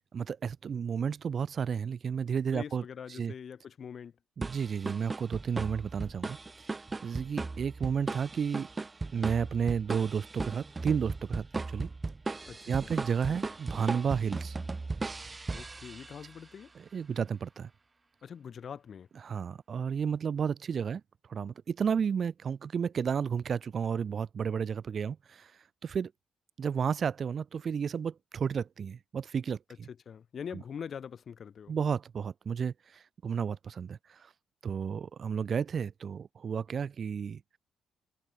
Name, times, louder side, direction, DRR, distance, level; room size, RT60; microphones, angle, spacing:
voice 1, 0.0-2.8 3.1-3.3 4.4-6.4 7.0-8.7 9.1-11.9 12.7-14.6 16.7-17.7 19.2-21.0 21.3-25.5 25.8-26.1 26.6-29.9 31.7-34.3 34.6-37.4, right 7 dB, 50° right, 2.5 m, -32 dB
voice 2, 2.5-4.1 12.5-12.9 15.5-16.7 18.2-19.1 29.9-31.8, left 7 dB, 50° left, 7.0 m, -43 dB
sound 1, 4.4-16.4, right 3 dB, 25° right, 3.8 m, -37 dB
cardioid pair, 90°, 0 cm